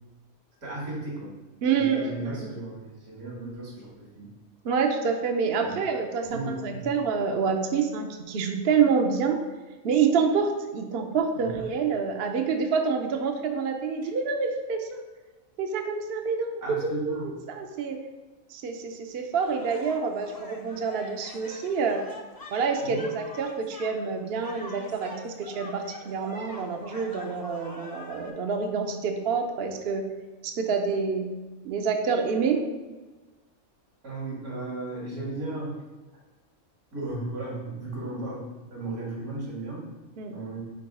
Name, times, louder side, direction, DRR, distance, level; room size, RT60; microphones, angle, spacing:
voice 1, 0.6-1.3 1.7-4.3 5.6-5.8 6.2-6.9 11.3-11.5 16.6-17.3 22.8-23.0 34.0-35.7 36.9-39.8 40.3-40.6, right 2 dB, 80° right, -4 dB, 2.5 m, -35 dB
voice 2, 1.6-2.5 4.6-9.4 9.8-15.0 15.6-18.0 18.5-22.0 22.5-30.0 30.4-31.3 31.6-32.6 40.2-40.3, right 5 dB, 55° right, 4 dB, 0.7 m, -27 dB
sound 1, 19.4-28.3, left 2 dB, 25° left, 0.5 m, -44 dB
4.8 x 4.6 x 4.8 m, 1.2 s
omnidirectional pair, 1.5 m